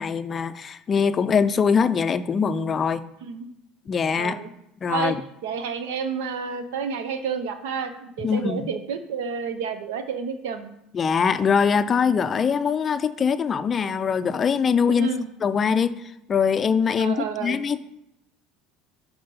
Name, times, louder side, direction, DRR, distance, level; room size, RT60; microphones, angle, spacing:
voice 1, 0.0-3.0 3.9-4.4 4.8-5.2 8.2-8.7 10.9-15.1 15.4-15.9 16.3-17.8, left 6 dB, 30° left, 13 dB, 0.4 m, -22 dB
voice 2, 4.2-4.5 4.9-5.2 5.4-10.7 14.9-15.3 17.0-17.6, right 6 dB, 90° right, 9 dB, 0.7 m, -30 dB
5.5 x 4.3 x 5.3 m, 0.82 s
supercardioid pair, 120°, 0 cm